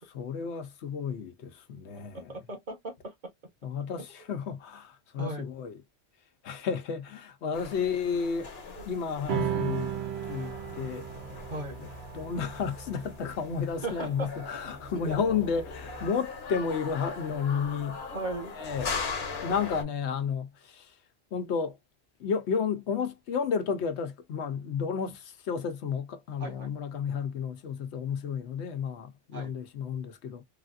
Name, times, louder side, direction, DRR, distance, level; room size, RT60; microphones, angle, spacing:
voice 1, 0.1-2.3 3.6-5.8 6.4-8.5 8.8-10.0 10.3-11.1 11.8-11.9 12.1-18.0 18.6-19.0 19.4-21.0 21.3-21.8 22.2-30.4, left 6 dB, 90° left, 1.0 m, -32 dB
voice 2, 2.1-3.1 5.2-5.5 8.8-8.9 11.5-11.9 13.8-14.3 15.0-15.2 18.1-18.5 26.4-26.7 29.3-29.5, right 2 dB, 45° right, 1.3 m, -37 dB
sound 1, 7.5-19.8, left 5 dB, 70° left, 1.1 m, -40 dB
sound 2, 9.3-16.0, right 10 dB, 75° right, 0.8 m, -37 dB
sound 3, 10.5-16.1, left 3 dB, 30° right, 0.9 m, -50 dB
3.4 x 2.4 x 2.4 m
omnidirectional pair, 1.1 m